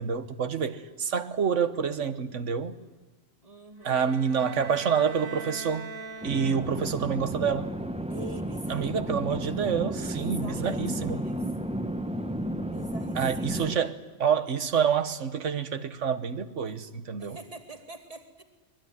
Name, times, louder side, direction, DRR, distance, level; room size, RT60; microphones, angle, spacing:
voice 1, 0.0-2.7 3.8-5.9 6.2-7.7 8.7-11.2 13.2-17.4, right 7 dB, 65° right, 11 dB, 1.5 m, -28 dB
voice 2, 3.4-4.1 8.1-9.1 10.1-11.5 12.6-13.9 17.2-18.4, right 2 dB, 25° right, 5 dB, 2.4 m, -45 dB
sound 1, 3.8-7.0, right 3 dB, 10° left, 2.2 m, -41 dB
sound 2, 6.2-13.8, right 1 dB, 5° right, 0.7 m, -33 dB
22.5 x 22.0 x 9.9 m, 1.3 s
omnidirectional pair, 1.4 m